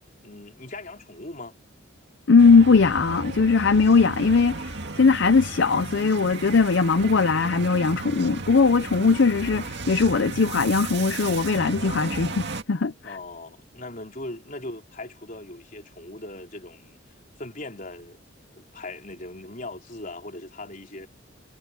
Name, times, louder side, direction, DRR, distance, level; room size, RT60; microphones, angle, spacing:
voice 1, 0.2-1.5 13.0-17.0 17.4-18.2 18.6-21.1, left 2 dB, 40° left, 4.3 m, -39 dB
voice 2, 2.3-13.2, left 4 dB, 60° left, 0.6 m, -20 dB
sound 1, 2.4-12.6, right 3 dB, 55° right, 2.2 m, -35 dB
head